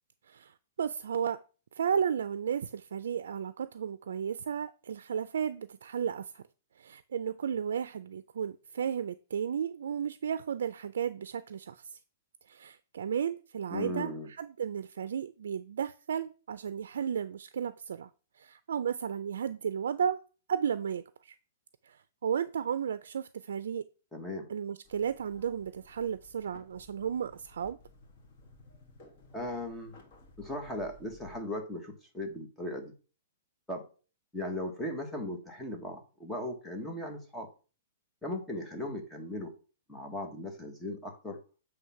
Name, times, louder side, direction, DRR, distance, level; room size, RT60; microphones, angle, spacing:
voice 1, 0.3-1.4 1.7-6.4 6.8-12.0 12.5-14.1 14.4-18.1 18.4-20.2 20.5-21.4 21.8-23.9 24.5-27.8, right 8 dB, 80° right, 0.4 m, -34 dB
voice 2, 13.7-14.3 24.1-24.5 29.3-30.0 30.4-32.9 33.7-33.9 34.3-37.5 38.2-39.5 39.9-41.4, left 1 dB, 5° left, 1.2 m, -37 dB
sound 1, 24.8-31.4, left 1 dB, 35° left, 1.6 m, -57 dB
8.0 x 3.3 x 5.7 m
hypercardioid pair, 165°, 0 cm